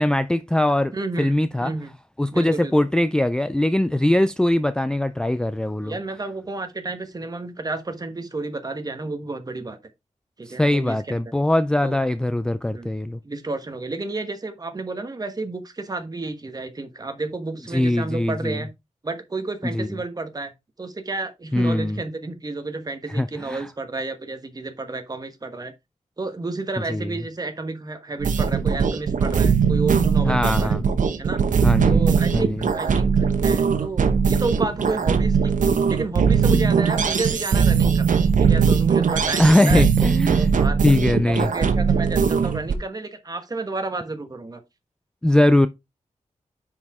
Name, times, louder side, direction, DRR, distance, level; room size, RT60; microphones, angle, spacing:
voice 1, 0.0-1.7 2.2-6.0 10.5-13.2 17.7-18.6 19.7-19.9 21.5-22.0 23.1-23.7 26.9-27.1 30.2-30.8 31.6-32.7 36.5-36.8 39.4-40.5 40.8-41.5 45.2-45.7, left 1 dB, 5° left, 0.3 m, -21 dB
voice 2, 0.9-1.9 2.3-2.7 5.8-9.8 10.4-11.2 11.8-12.0 12.7-12.9 13.2-18.7 19.0-20.5 20.8-25.7 26.2-30.8 31.2-31.4 31.9-35.6 35.9-39.8 40.3-40.8 41.2-44.6, right 3 dB, 30° right, 1.2 m, -31 dB
sound 1, 28.2-42.7, right 6 dB, 80° right, 1.0 m, -20 dB
9.6 x 4.8 x 3.6 m
wide cardioid pair, 150°, 13 cm